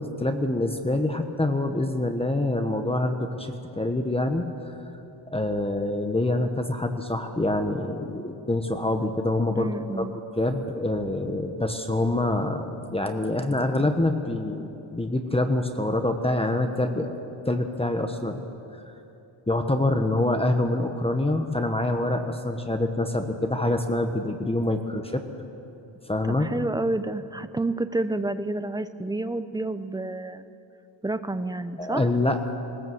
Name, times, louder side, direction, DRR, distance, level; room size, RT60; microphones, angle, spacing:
voice 1, 0.0-4.7 5.3-9.7 10.0-10.1 10.4-17.1 17.4-18.4 19.5-25.2 26.1-26.5 31.8-32.5, left 2 dB, 10° left, 5 dB, 1.1 m, -26 dB
voice 2, 9.6-10.2 26.3-30.4 31.0-32.0, right 2 dB, 10° right, 11 dB, 0.7 m, -29 dB
20.0 x 20.0 x 7.9 m, 2.8 s
wide cardioid pair, 135°, 47 cm